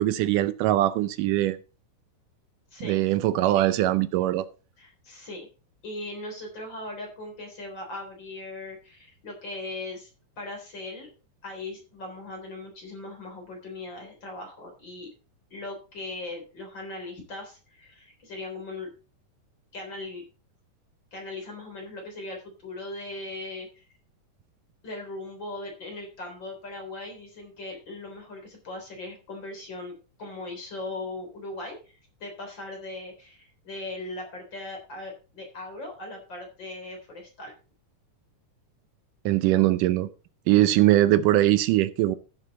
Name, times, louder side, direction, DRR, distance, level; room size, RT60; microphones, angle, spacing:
voice 1, 0.0-1.6 2.8-4.5 39.3-40.1 40.5-42.2, right 14 dB, 80° right, 2.2 m, -21 dB
voice 2, 4.8-5.5 5.8-10.1 10.4-11.1 11.4-15.1 15.5-18.9 19.7-20.2 21.1-23.7 24.8-29.9 30.2-37.5, left 2 dB, 35° left, 4.2 m, -39 dB
14.0 x 7.6 x 4.2 m
omnidirectional pair, 3.8 m